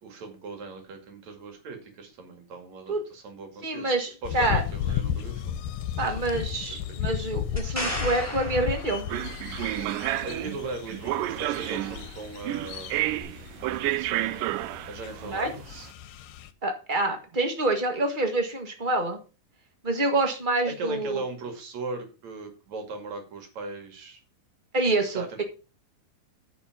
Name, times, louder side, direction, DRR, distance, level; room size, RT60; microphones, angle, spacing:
voice 1, 0.0-3.9 4.2-5.6 6.0-6.4 6.7-6.8 7.1-7.2 10.2-13.0 13.7-14.4 14.9-15.9 20.8-24.2 25.1-25.4, right 3 dB, 55° right, 4 dB, 3.3 m, -39 dB
voice 2, 3.6-4.6 6.0-9.1 15.2-15.5 16.6-19.2 19.8-21.2 24.7-25.4, right 2 dB, 35° right, 4 dB, 0.8 m, -27 dB
sound 1, 4.2-16.5, left 10 dB, 85° left, 2.5 m, -34 dB
sound 2, 7.6-9.5 13.2-13.3, equal, 5° right, 4.3 m, -34 dB
sound 3, 9.1-15.8, right 16 dB, 80° right, 2.1 m, -31 dB
10.0 x 6.1 x 5.9 m, 0.33 s
omnidirectional pair, 3.9 m